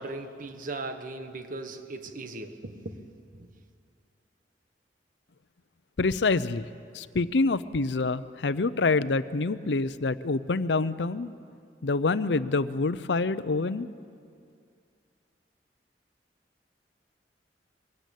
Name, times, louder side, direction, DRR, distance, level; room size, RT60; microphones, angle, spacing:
voice 1, 0.0-3.1 3.3-3.5, right 2 dB, 50° right, 1.2 m, -38 dB
voice 2, 6.0-6.7 6.9-11.3 11.8-13.9, left 3 dB, 80° left, 0.7 m, -26 dB
23.0 x 16.5 x 8.4 m
head